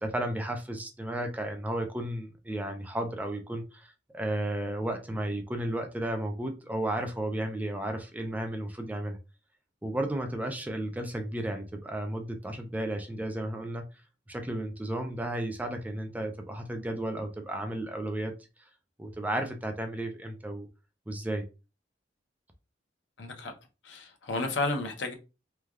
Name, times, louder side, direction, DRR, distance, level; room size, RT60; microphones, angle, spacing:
voice 1, 0.0-9.2 9.8-13.9 14.3-18.3 19.0-20.7 21.1-21.5, right 1 dB, 10° right, 0.4 m, -33 dB
voice 2, 23.2-23.5 23.8-25.1, left 2 dB, 75° left, 0.7 m, -32 dB
3.2 x 2.3 x 2.3 m
head